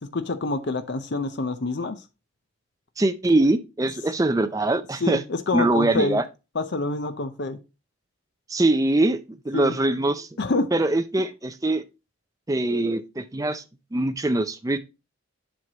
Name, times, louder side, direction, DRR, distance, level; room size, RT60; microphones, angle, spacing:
voice 1, 0.0-2.0 5.0-6.2 6.5-7.6 9.5-9.8 10.4-10.7, left 3 dB, 50° left, 0.6 m, -27 dB
voice 2, 3.0-5.2 5.5-6.2 8.5-10.3 10.7-11.8 12.5-13.6 13.9-14.8, right 2 dB, 15° right, 0.4 m, -23 dB
7.7 x 5.8 x 2.8 m
head